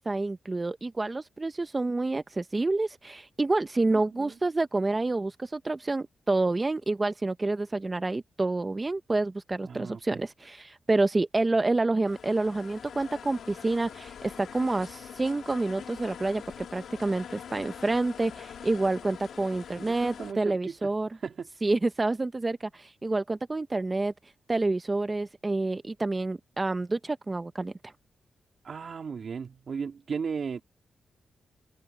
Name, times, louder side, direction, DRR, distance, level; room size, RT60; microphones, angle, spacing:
voice 1, 0.0-21.1 21.6-24.1 24.5-27.9, right 2 dB, 25° right, 0.6 m, -28 dB
voice 2, 3.9-4.4 9.6-10.2 19.8-20.9 21.2-21.5 28.6-30.6, right 6 dB, 55° right, 2.6 m, -36 dB
sound 1, 12.0-20.3, left 8 dB, 80° left, 2.5 m, -44 dB
wide cardioid pair, 115°, 0 cm